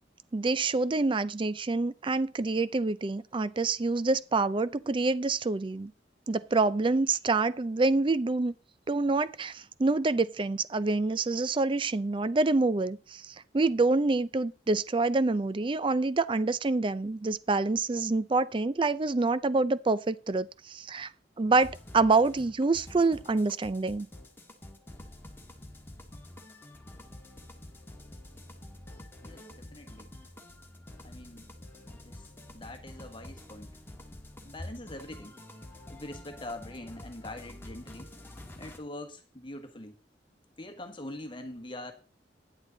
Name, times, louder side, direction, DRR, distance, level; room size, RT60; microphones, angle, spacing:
voice 1, 0.3-5.9 6.3-8.5 8.9-21.1 21.4-24.1, right 3 dB, 30° right, 0.4 m, -27 dB
sound 1, 21.6-38.8, left 1 dB, 15° left, 1.5 m, -48 dB
voice 2, 29.2-30.1 31.0-31.5 31.9-32.2 32.5-33.7 34.4-35.3 35.9-38.1 38.6-39.9 40.6-41.9, left 1 dB, 30° left, 1.3 m, -43 dB
10.0 x 9.3 x 3.9 m
head